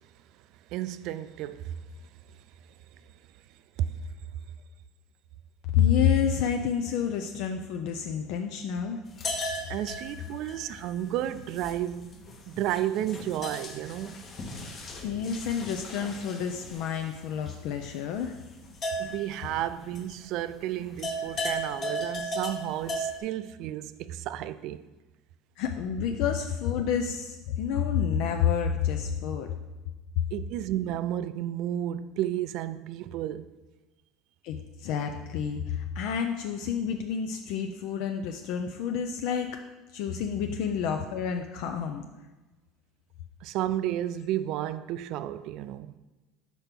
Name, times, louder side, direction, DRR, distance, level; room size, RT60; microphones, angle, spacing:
voice 1, 0.7-1.8 3.8-3.9 9.7-14.2 19.0-24.8 30.3-33.5 43.4-46.0, right 12 dB, 55° right, 0.3 m, -32 dB
voice 2, 5.7-9.0 15.0-18.4 25.6-29.5 34.4-39.6 39.9-42.0, left 8 dB, 65° left, 0.5 m, -29 dB
sound 1, 9.1-20.5 20.8-23.2, equal, 30° left, 0.9 m, -37 dB
5.2 x 4.5 x 5.8 m
cardioid pair, 140°, 0 cm